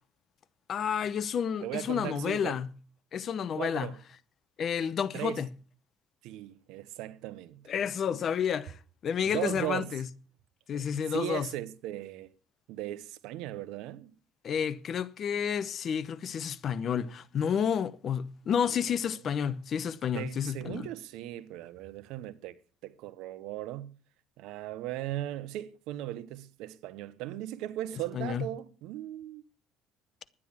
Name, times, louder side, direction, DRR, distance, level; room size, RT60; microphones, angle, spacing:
voice 1, 0.7-2.7 3.1-3.9 4.6-5.5 7.7-8.8 9.0-10.1 10.7-11.5 14.4-20.9 28.1-28.5, left 8 dB, 45° left, 0.8 m, -30 dB
voice 2, 1.6-2.6 3.5-4.0 5.1-5.4 6.2-7.6 9.3-9.9 10.7-12.3 12.7-14.1 18.7-18.9 20.1-23.9 24.4-29.4, right 14 dB, 80° right, 1.0 m, -38 dB
11.0 x 10.0 x 7.4 m
cardioid pair, 110°, 0 cm